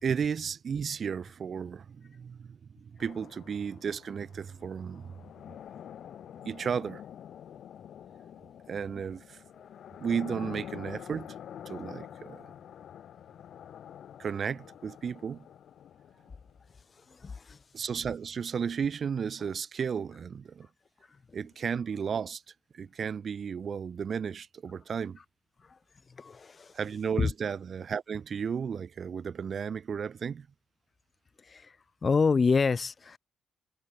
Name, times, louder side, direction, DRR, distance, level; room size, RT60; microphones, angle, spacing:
voice 1, 0.0-5.2 6.4-7.0 8.7-9.4 10.0-11.4 11.6-12.5 14.2-15.5 17.7-20.7 21.3-22.4 22.7-25.2 26.7-30.5, right 6 dB, 50° right, 3.2 m, -34 dB
sound 1, 3.0-16.8, left 9 dB, 65° left, 6.5 m, -47 dB
voice 2, 17.1-17.6 26.2-26.7 27.2-27.3 31.5-31.7 32.0-33.2, left 5 dB, 35° left, 0.7 m, -27 dB
cardioid pair, 90°, 0 cm